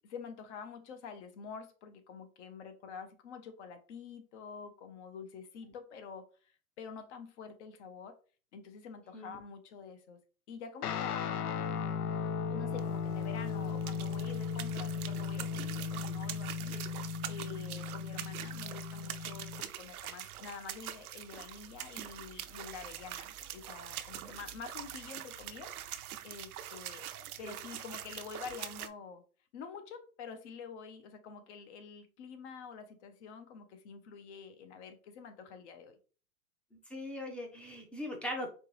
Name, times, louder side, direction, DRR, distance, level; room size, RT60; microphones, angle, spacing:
voice 1, 0.0-8.2 8.5-10.2 10.5-11.7 12.5-17.0 17.3-19.5 19.8-25.7 26.2-27.1 27.4-29.2 29.5-36.0, left 6 dB, 50° left, 0.9 m, -47 dB
Guitar, 10.8-19.6, left 6 dB, 85° left, 0.6 m, -36 dB
sound 1, 12.7-28.9, right 11 dB, 75° right, 0.6 m, -44 dB
voice 2, 36.9-38.5, left 1 dB, 5° left, 0.5 m, -40 dB
4.4 x 3.0 x 3.1 m
hypercardioid pair, 130°, 45 cm